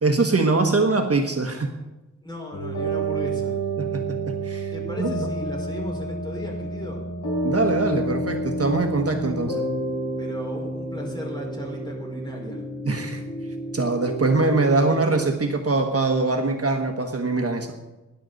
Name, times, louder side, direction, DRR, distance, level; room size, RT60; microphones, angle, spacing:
voice 1, 0.0-1.7 3.8-4.2 4.4-4.7 5.0-5.3 7.4-9.6 12.8-13.2 13.7-17.7, right 3 dB, 50° right, 4 dB, 1.2 m, -23 dB
voice 2, 2.2-3.6 4.7-7.0 10.2-12.6, left 1 dB, 15° left, -1 dB, 4.8 m, -36 dB
sound 1, 2.5-15.3, right 2 dB, 75° left, 5.6 m, -29 dB
19.5 x 10.5 x 4.0 m, 1.1 s
wide cardioid pair, 90°, 31 cm